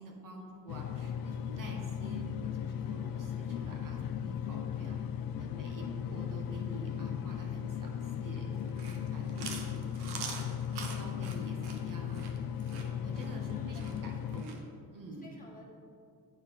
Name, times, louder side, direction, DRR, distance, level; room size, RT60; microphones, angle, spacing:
voice 1, 0.0-5.0 5.4-10.4 10.9-12.2 12.8-15.4, right 2 dB, 55° right, 0 dB, 1.4 m, -48 dB
sound 1, 0.7-14.4, left 8 dB, 60° left, 0.5 m, -37 dB
voice 2, 5.3-5.8 13.3-14.3 15.2-15.7, left 2 dB, 20° left, -1 dB, 1.5 m, -54 dB
Chewing mastication, 8.6-14.6, right 5 dB, 75° right, 1.1 m, -44 dB
8.8 x 4.6 x 4.7 m, 2.3 s
cardioid pair, 90°, 39 cm